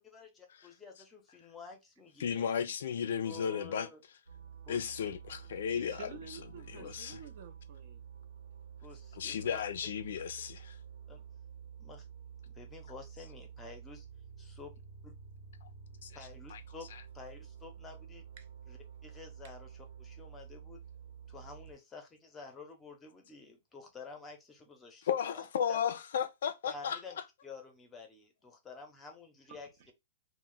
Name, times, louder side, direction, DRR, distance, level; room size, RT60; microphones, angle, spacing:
voice 1, 0.0-2.5 3.2-4.0 4.7-4.8 6.8-6.9 8.8-9.6 11.1-11.2 11.8-12.0 12.5-14.1 14.4-14.7 15.0-15.1 16.1-16.9 17.1-18.2 18.7-20.8 21.3-25.8 26.7-27.2 27.4-29.7, left 4 dB, 15° left, 0.7 m, -50 dB
voice 2, 2.2-3.9 4.7-6.1 6.7-7.2 9.1-10.6 15.6-15.7 16.0-16.1 16.5-16.6 16.9-17.0 25.0-27.0, left 8 dB, 70° left, 0.4 m, -34 dB
sound 1, 4.3-21.7, right 8 dB, 90° right, 0.7 m, -50 dB
voice 3, 5.7-8.0 18.4-18.5 29.5-29.9, right 6 dB, 50° right, 0.6 m, -51 dB
2.3 x 2.1 x 3.8 m
hypercardioid pair, 150°, 0 cm